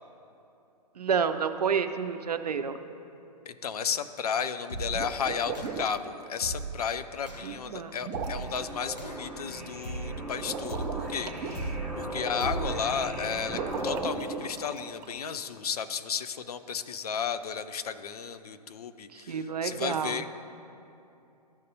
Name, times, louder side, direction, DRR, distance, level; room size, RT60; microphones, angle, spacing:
voice 1, 1.0-2.8 7.4-7.9 19.1-20.2, right 6 dB, 70° right, 9 dB, 0.5 m, -29 dB
voice 2, 3.5-20.3, left 7 dB, 65° left, 11 dB, 0.5 m, -33 dB
sound 1, 4.7-5.1 5.5-5.9 6.4-6.8 7.3-7.5 8.1-8.5 9.0-9.4 9.8-10.3 10.7-11.1 11.5-12.0 12.4-12.8, right 3 dB, 90° left, 1.1 m, -36 dB
sound 2, 4.9-6.1 8.0-8.6 10.4-11.5 13.5-15.2, right 6 dB, 15° right, 0.4 m, -37 dB
sound 3, 8.3-14.0, right 1 dB, 5° left, 1.0 m, -37 dB
13.5 x 5.3 x 2.6 m, 2.7 s
figure-of-eight pair, 120°, 21 cm